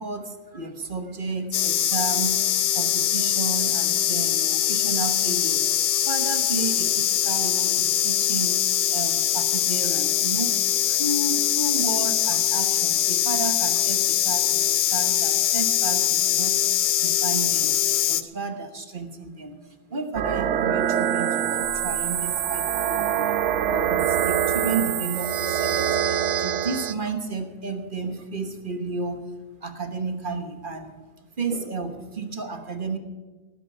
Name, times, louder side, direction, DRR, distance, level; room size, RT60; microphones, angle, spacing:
voice 1, 0.0-2.4 2.7-5.6 6.1-8.6 8.9-16.7 17.0-23.3 23.7-29.2 29.6-31.0 31.4-33.0, right 3 dB, 35° right, 8 dB, 1.2 m, -32 dB
sound 1, 1.5-18.2, left 11 dB, 65° left, 1.1 m, -22 dB
sound 2, 20.1-26.9, right 9 dB, 60° right, 0.8 m, -24 dB
17.5 x 9.6 x 6.1 m, 1.3 s
omnidirectional pair, 1.9 m